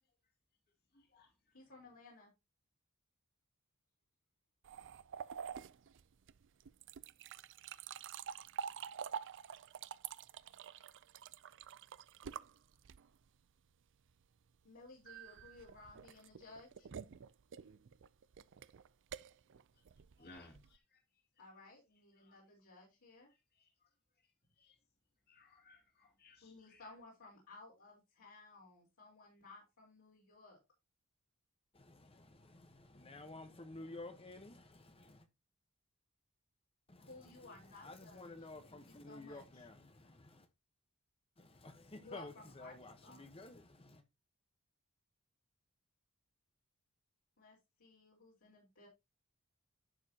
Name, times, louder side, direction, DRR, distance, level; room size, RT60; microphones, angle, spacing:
voice 1, 0.9-1.6 19.7-19.8 20.2-21.5 22.1-22.4 23.3-24.8 25.3-27.0, left 2 dB, 45° left, 2.6 m, -63 dB
voice 2, 1.5-2.3 14.6-16.9 21.4-23.3 26.4-30.6 37.1-38.3 38.6-39.6 42.0-43.3 47.4-48.9, left 3 dB, 65° left, 3.9 m, -57 dB
sound 1, 4.6-13.3 15.0-20.8, right 7 dB, 60° right, 0.5 m, -48 dB
voice 3, 31.7-35.3 36.9-40.5 41.4-44.0, left 2 dB, 25° left, 1.1 m, -53 dB
11.0 x 7.3 x 2.8 m
head